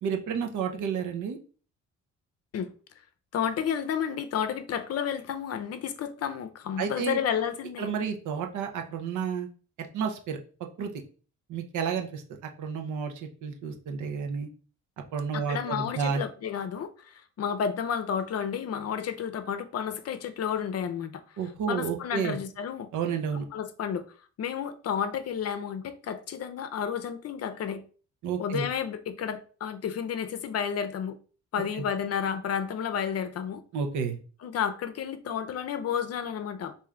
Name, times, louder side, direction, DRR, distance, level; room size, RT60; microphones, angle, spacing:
voice 1, 0.0-1.4 6.8-7.2 7.8-9.5 9.9-10.4 10.8-10.9 11.5-14.5 15.1-16.2 21.4-22.4 22.9-23.4 28.2-28.7 31.7-31.8 33.7-34.2, right 6 dB, 80° right, 0.7 m, -31 dB
voice 2, 3.3-7.9 15.3-21.2 21.7-22.9 23.5-24.1 24.4-27.8 28.4-31.2 31.5-33.6 34.4-36.7, left 8 dB, 55° left, 0.5 m, -31 dB
3.2 x 2.7 x 3.6 m
cardioid pair, 90°, 30 cm